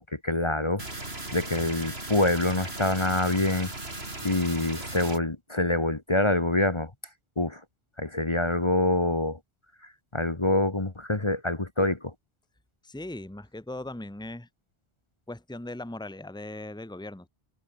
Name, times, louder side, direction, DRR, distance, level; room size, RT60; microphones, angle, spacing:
voice 1, 0.0-3.7 4.2-6.9 7.4-7.6 8.0-9.4 10.1-12.1, left 2 dB, 30° left, 1.5 m, -26 dB
sound 1, 0.8-5.2, right 2 dB, 80° right, 5.1 m, -37 dB
voice 2, 12.8-14.5 15.3-17.3, left 1 dB, 5° left, 1.5 m, -39 dB
omnidirectional pair, 1.0 m